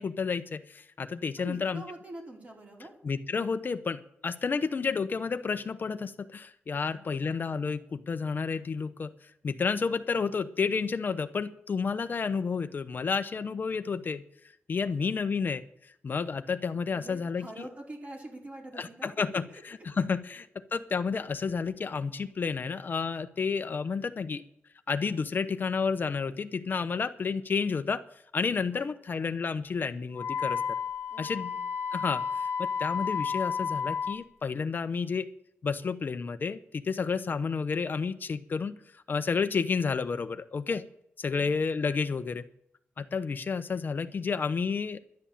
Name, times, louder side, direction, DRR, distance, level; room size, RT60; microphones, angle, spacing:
voice 1, 0.0-1.8 3.0-14.2 14.7-17.7 18.7-24.4 24.9-28.0 28.3-30.6 31.2-31.5 31.9-35.3 35.6-40.9 41.2-42.5 43.0-45.0, left 5 dB, 50° left, 10 dB, 0.7 m, -31 dB
voice 2, 1.4-2.9 6.8-7.4 16.9-19.2 19.5-19.6 28.7-29.3 31.1-31.6 41.3-41.5, right 1 dB, 35° right, -1 dB, 4.6 m, -45 dB
Wind instrument woodwind instrument, 30.1-34.2, left 6 dB, 75° left, 1.1 m, -32 dB
11.5 x 10.5 x 7.2 m, 0.71 s
cardioid pair, 95°, 4 cm